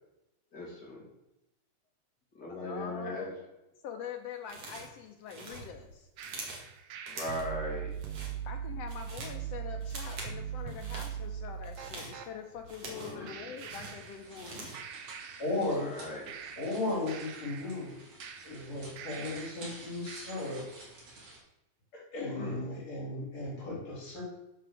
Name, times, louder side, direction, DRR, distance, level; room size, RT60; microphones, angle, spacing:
voice 1, 0.5-1.0 2.3-3.3 7.1-7.9 12.8-13.5 15.6-16.3 22.3-22.6, left 1 dB, 30° left, -4 dB, 3.6 m, -39 dB
voice 2, 2.6-3.3 3.8-6.1 8.4-14.7, left 8 dB, 80° left, 4 dB, 1.4 m, -44 dB
sound 1, 4.5-5.0 5.3-6.7 7.1-7.5 7.9-8.3 8.7-9.4 9.8-10.4 10.7-11.1 11.6-13.2 13.6-14.9, right 3 dB, 50° right, 2.8 m, -45 dB
sound 2, 6.2-12.3 13.3-14.5 14.7-16.0 16.3-19.7 20.1-20.7, right 8 dB, 70° right, 1.9 m, -41 dB
sound 3, 13.8-21.4, right 2 dB, 90° right, 5.2 m, -51 dB
voice 3, 15.4-15.9 16.6-17.9 18.4-20.7 22.1-24.2, left 2 dB, 50° left, -6 dB, 5.5 m, -35 dB
11.0 x 4.7 x 6.7 m, 0.94 s
omnidirectional pair, 3.7 m